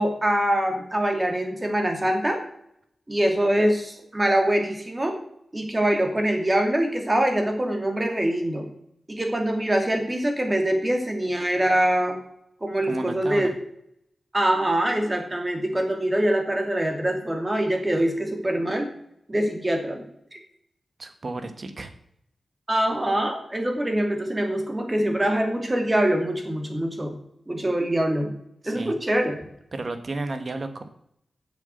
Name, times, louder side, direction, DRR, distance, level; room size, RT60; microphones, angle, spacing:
voice 1, 0.0-2.4 3.1-5.2 5.5-8.6 9.1-12.2 12.6-13.5 14.3-18.9 19.3-20.0 20.3-20.4 22.7-27.1 27.5-28.3 28.6-29.5, right 1 dB, 20° right, 4 dB, 2.5 m, -24 dB
voice 2, 12.8-13.5 21.0-21.9 28.6-29.0 29.7-30.8, right 2 dB, 50° right, 8 dB, 1.6 m, -32 dB
8.4 x 7.3 x 8.2 m, 0.74 s
wide cardioid pair, 85°, 0 cm